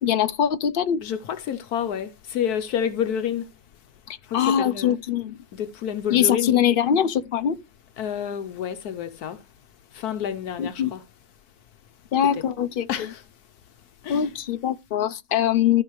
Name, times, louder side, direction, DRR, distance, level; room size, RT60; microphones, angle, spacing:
voice 1, 0.0-1.0 4.3-5.3 6.1-7.6 10.6-10.9 12.1-13.1 14.1-15.8, left 9 dB, 50° left, 0.6 m, -22 dB
voice 2, 1.0-3.5 4.3-5.0 5.5-6.5 8.0-9.4 9.9-11.0 12.3-12.4 12.9-13.2 14.0-14.3, left 9 dB, 80° left, 1.2 m, -29 dB
14.5 x 5.6 x 3.1 m
omnidirectional pair, 1.6 m